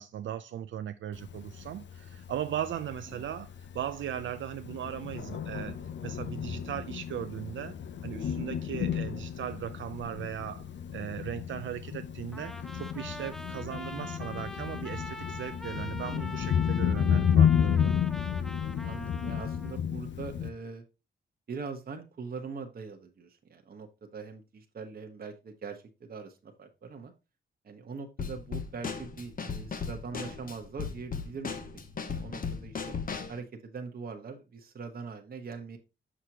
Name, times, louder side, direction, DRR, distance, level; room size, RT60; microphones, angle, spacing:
voice 1, 0.0-7.7 8.0-10.7 10.9-18.0, right 10 dB, 70° right, 0.5 m, -38 dB
Thunder, 1.1-20.5, left 8 dB, 60° left, 0.6 m, -32 dB
Trumpet, 12.3-19.8, left 2 dB, ahead, 0.6 m, -44 dB
voice 2, 16.0-16.5 18.8-20.8 21.5-27.1 27.6-31.6 32.0-32.9 33.3-35.8, right 5 dB, 45° right, 1.1 m, -42 dB
Drum kit / Snare drum, 28.2-33.4, left 5 dB, 45° left, 0.9 m, -37 dB
6.5 x 6.2 x 2.9 m
cardioid pair, 90°, 21 cm